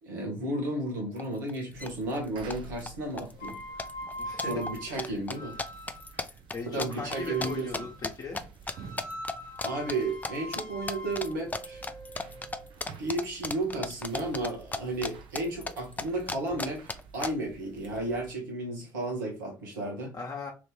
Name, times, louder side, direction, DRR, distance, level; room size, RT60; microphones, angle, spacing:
voice 1, 0.0-3.6 4.4-5.6 6.6-7.9 9.6-11.8 13.0-20.1, right 2 dB, 80° right, 1.1 m, -33 dB
sound 1, 1.2-1.3 1.5-1.9 2.2-2.9 3.2-3.5 3.8-8.4 8.7-9.3 9.6-10.0 10.2-10.6 10.9-15.1 15.4-17.3, left 3 dB, 15° left, 0.4 m, -34 dB
sound 2, 1.7-18.3, right 5 dB, 55° right, 0.6 m, -50 dB
sound 3, 3.3-6.2 7.1-8.1 8.7-12.7, equal, 75° left, 0.5 m, -42 dB
voice 2, 4.2-4.6 4.9-5.2 6.5-8.4 20.1-20.5, left 4 dB, 40° left, 1.0 m, -39 dB
3.1 x 2.6 x 3.3 m
figure-of-eight pair, 45°, 10 cm